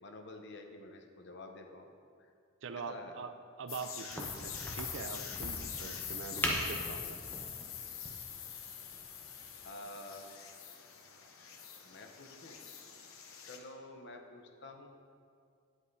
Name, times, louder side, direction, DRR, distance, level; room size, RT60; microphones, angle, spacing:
voice 1, 0.0-1.9 2.2-2.3 2.7-3.2 9.6-10.3 11.8-12.6 13.5-14.9, left 2 dB, 55° left, 4 dB, 0.7 m, -49 dB
voice 2, 2.6-7.2, right 5 dB, 65° right, 9 dB, 0.4 m, -44 dB
sound 1, 3.7-13.6, left 8 dB, 85° left, 0.8 m, -44 dB
Crack, 4.1-9.5, left 1 dB, 10° left, 0.8 m, -40 dB
9.7 x 8.1 x 2.7 m, 2.4 s
head